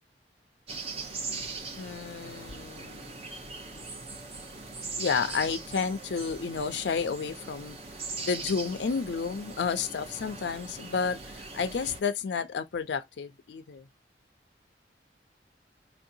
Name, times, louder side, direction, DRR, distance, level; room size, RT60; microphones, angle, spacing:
sound 1, 0.7-12.0, right 3 dB, 35° right, 0.8 m, -40 dB
voice 1, 1.8-3.2 5.0-7.8 8.2-13.9, left 5 dB, 75° left, 0.4 m, -31 dB
4.4 x 2.6 x 2.7 m
head